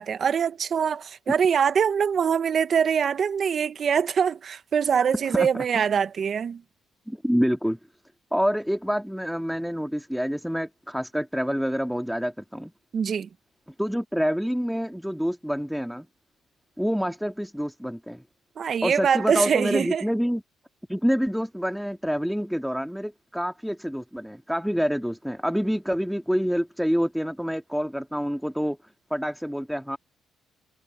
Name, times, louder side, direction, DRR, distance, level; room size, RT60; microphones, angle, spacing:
voice 1, 0.0-6.6 12.9-13.3 18.6-20.0, right 7 dB, 50° right, 1.1 m, -23 dB
voice 2, 5.3-5.6 7.1-7.8 8.3-12.7 13.8-16.1 16.8-18.2 18.8-20.4 20.9-28.8 29.1-30.0, equal, ahead, 1.9 m, -27 dB
cardioid pair, 90°, 0 cm